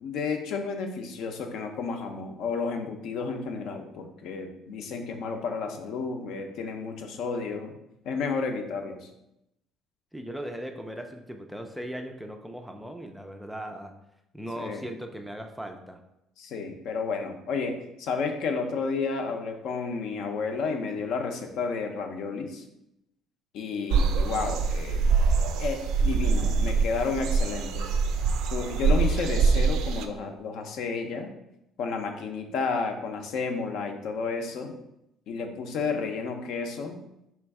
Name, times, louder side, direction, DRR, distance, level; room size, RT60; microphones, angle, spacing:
voice 1, 0.0-7.7 8.1-9.1 14.6-14.8 16.4-22.6 23.5-25.0 25.6-27.9 28.5-31.3 31.8-34.7 35.3-37.0, left 4 dB, 65° left, 5 dB, 0.6 m, -31 dB
voice 2, 10.1-13.9 14.3-16.0, equal, ahead, 4 dB, 0.3 m, -38 dB
sound 1, 23.9-30.1, right 4 dB, 75° right, 0.4 m, -24 dB
3.4 x 3.1 x 4.7 m, 0.84 s
cardioid pair, 150°, 0 cm